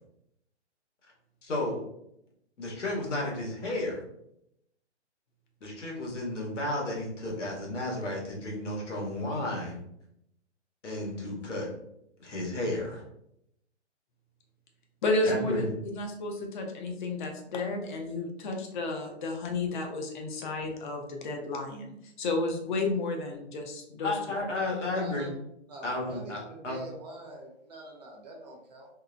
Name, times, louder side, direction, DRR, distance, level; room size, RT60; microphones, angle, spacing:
voice 1, 1.4-1.8 2.6-4.0 5.6-9.8 10.8-11.7 12.2-13.0 15.2-15.7 24.0-25.3 25.8-26.8, left 2 dB, 85° left, -2 dB, 1.1 m, -32 dB
voice 2, 15.0-15.6 15.9-24.1, left 2 dB, 45° left, 2 dB, 0.5 m, -32 dB
voice 3, 24.9-25.3 25.7-28.9, right 2 dB, 35° right, -1 dB, 0.6 m, -45 dB
2.6 x 2.1 x 2.4 m, 0.77 s
hypercardioid pair, 155°, 35 cm